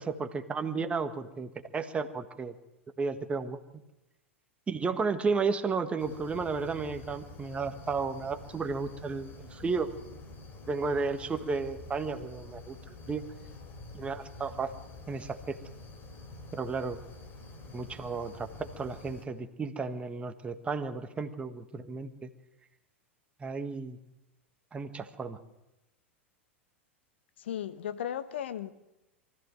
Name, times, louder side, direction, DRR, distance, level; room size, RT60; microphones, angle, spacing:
voice 1, 0.0-2.5 3.0-3.6 4.7-9.9 10.7-13.2 13.9-14.7 15.1-15.6 16.5-17.0 17.7-22.3 23.4-24.0 24.7-25.4, right 4 dB, 15° right, 1.6 m, -33 dB
sound 1, 6.0-19.3, left 2 dB, 35° left, 4.4 m, -47 dB
voice 2, 27.4-28.7, left 10 dB, 60° left, 1.2 m, -35 dB
23.5 x 14.5 x 7.7 m
figure-of-eight pair, 90°, 7 cm